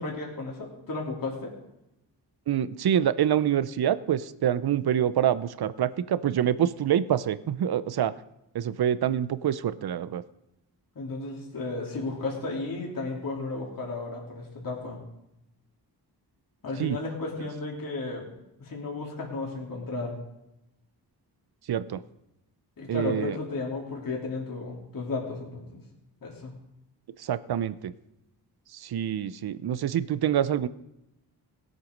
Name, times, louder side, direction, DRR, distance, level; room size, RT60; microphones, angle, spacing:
voice 1, 0.0-1.5 10.9-15.0 16.6-18.3 18.6-20.2 22.8-25.8 26.2-26.5, left 3 dB, 55° left, -2 dB, 3.3 m, -34 dB
voice 2, 2.5-8.1 8.5-10.2 16.8-17.0 21.7-22.0 22.9-23.4 27.2-27.9 28.7-30.7, right 10 dB, 65° right, 15 dB, 0.7 m, -26 dB
18.0 x 8.3 x 5.3 m, 0.86 s
cardioid pair, 95°, 40 cm